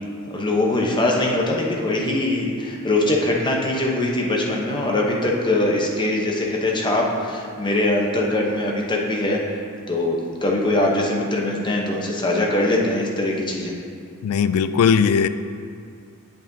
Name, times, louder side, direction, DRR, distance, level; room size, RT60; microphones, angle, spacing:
voice 1, 0.3-9.4 9.9-13.7, left 1 dB, 20° left, -1 dB, 0.8 m, -22 dB
voice 2, 14.2-15.3, left 6 dB, 70° left, 13 dB, 0.3 m, -18 dB
7.9 x 7.3 x 2.7 m, 2.2 s
head